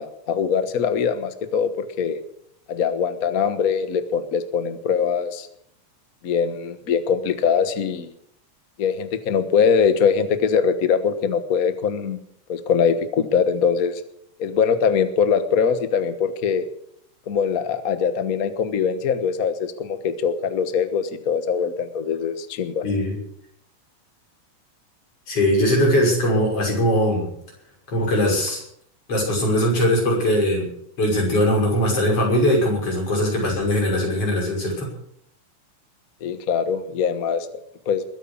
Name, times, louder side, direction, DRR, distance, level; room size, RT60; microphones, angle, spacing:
voice 1, 0.0-2.2 2.7-5.5 6.2-8.1 8.8-12.2 12.5-14.0 14.4-16.7 17.3-22.8 36.2-37.5 37.9-38.0, left 6 dB, 85° left, 10 dB, 0.7 m, -22 dB
voice 2, 22.8-23.2 25.3-27.3 27.9-28.6 29.1-30.7 31.0-34.9, equal, 45° left, -1 dB, 6.8 m, -20 dB
21.5 x 9.3 x 7.1 m, 0.69 s
omnidirectional pair, 3.7 m